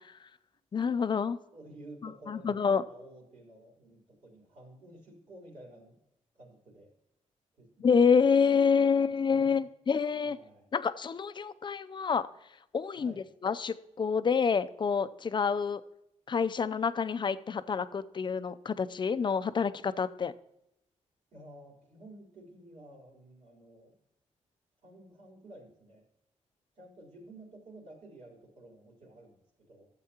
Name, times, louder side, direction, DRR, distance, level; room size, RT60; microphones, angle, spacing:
voice 1, 0.7-1.4 2.0-2.8 7.8-10.4 10.7-12.3 12.7-13.1 13.4-15.8 16.3-20.3, left 6 dB, 40° left, 13 dB, 0.5 m, -27 dB
voice 2, 1.5-6.0 6.3-7.0 7.6-8.3 8.7-9.6 10.2-10.7 12.9-13.2 21.3-24.0 24.8-26.1 26.8-29.9, right 1 dB, 70° right, -2 dB, 3.8 m, -52 dB
13.5 x 7.6 x 2.9 m, 0.83 s
cardioid pair, 100°, 13 cm